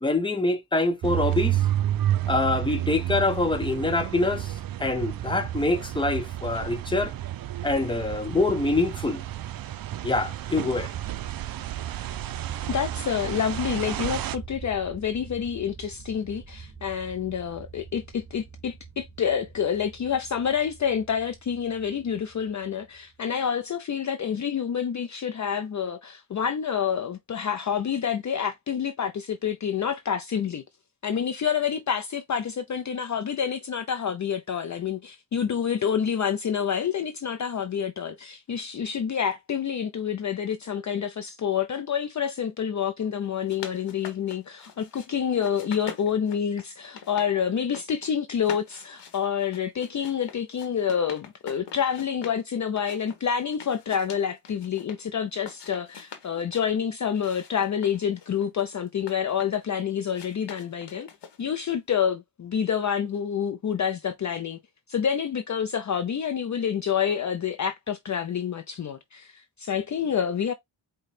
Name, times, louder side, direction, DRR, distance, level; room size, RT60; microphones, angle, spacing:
voice 1, 0.0-1.6 2.3-7.1 7.6-9.2 10.0-10.9, left 2 dB, 10° left, 0.9 m, -25 dB
sound 1, 1.0-14.4, right 13 dB, 60° right, 0.5 m, -31 dB
sound 2, 10.9-23.3, right 5 dB, 30° right, 3.0 m, -45 dB
voice 2, 12.7-30.6 31.0-61.1 61.4-64.6 64.9-70.5, left 8 dB, 45° left, 0.5 m, -28 dB
sound 3, 43.2-45.1 45.4-47.3 47.6-48.1 48.4-52.4 52.8-55.0 55.4-56.7 57.1-59.7 60.1-61.6, left 7 dB, 85° left, 1.2 m, -43 dB
5.0 x 2.3 x 4.2 m
wide cardioid pair, 105°, 41 cm